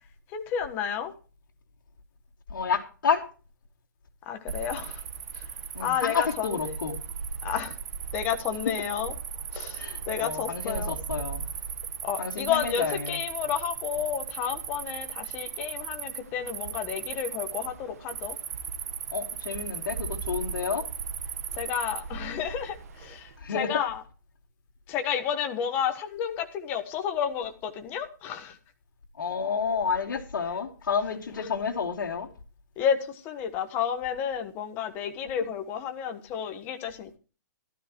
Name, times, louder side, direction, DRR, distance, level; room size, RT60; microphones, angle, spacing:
voice 1, 0.3-1.1 4.3-5.0 5.3-5.5 5.8-6.6 7.4-7.8 8.1-9.1 9.5-11.0 12.0-18.4 21.6-24.0 24.9-28.6 32.8-37.2, left 8 dB, 15° left, 6 dB, 1.3 m, -31 dB
voice 2, 2.5-3.2 5.7-7.0 9.7-11.4 12.2-13.2 19.1-20.9 23.4-23.7 29.2-32.3, left 6 dB, 75° left, -1 dB, 3.1 m, -30 dB
Cricket, 4.5-23.4, right 7 dB, 50° right, 1.3 m, -37 dB
15.0 x 13.0 x 3.1 m, 0.35 s
hypercardioid pair, 170°, 11 cm